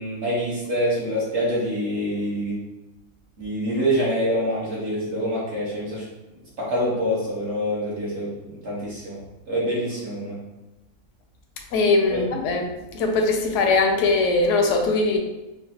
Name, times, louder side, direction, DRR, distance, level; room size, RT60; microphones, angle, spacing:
voice 1, 0.0-2.6 3.4-6.0 6.6-8.3 8.6-9.2 9.5-10.4 12.1-12.2, equal, 55° right, -8 dB, 1.4 m, -25 dB
voice 2, 11.7-12.6 12.9-15.2, left 3 dB, 65° left, 3 dB, 0.8 m, -20 dB
4.5 x 2.1 x 2.7 m, 1.1 s
omnidirectional pair, 1.5 m